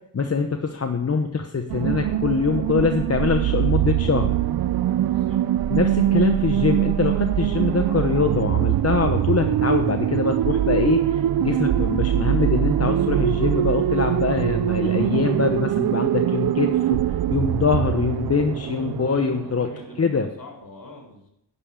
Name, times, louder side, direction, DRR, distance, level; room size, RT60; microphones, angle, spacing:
voice 1, 0.1-4.3 5.7-19.7 20.0-20.3, left 5 dB, 40° left, 5 dB, 0.9 m, -23 dB
sound 1, 1.7-19.9, right 12 dB, 80° right, 0.5 m, -23 dB
voice 2, 5.0-5.4 18.5-21.3, left 2 dB, 60° left, 0 dB, 3.9 m, -44 dB
11.0 x 5.6 x 8.6 m, 0.77 s
wide cardioid pair, 70°, 36 cm